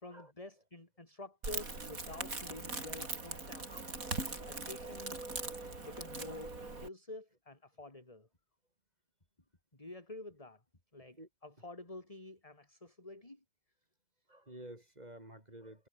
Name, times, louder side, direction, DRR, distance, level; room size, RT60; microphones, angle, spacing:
voice 1, 0.0-3.9 4.5-5.2 5.8-8.3 9.7-10.6 10.9-13.4, left 2 dB, 15° left, 3.5 m, -49 dB
Crackle, 1.4-6.9, right 3 dB, 45° right, 4.6 m, -41 dB
voice 2, 14.3-15.9, right 1 dB, 20° right, 4.3 m, -51 dB
omnidirectional pair, 2.0 m